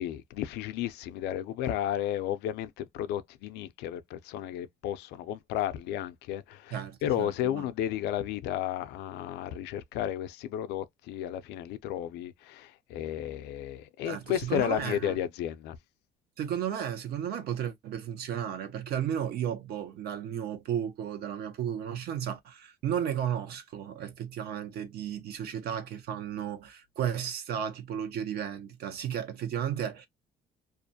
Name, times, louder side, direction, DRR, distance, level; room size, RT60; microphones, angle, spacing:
voice 1, 0.0-15.8, left 11 dB, 85° left, 0.4 m, -33 dB
voice 2, 6.7-7.7 14.0-15.2 16.4-30.1, right 9 dB, 65° right, 0.7 m, -34 dB
2.4 x 2.1 x 2.6 m
cardioid pair, 110°, 17 cm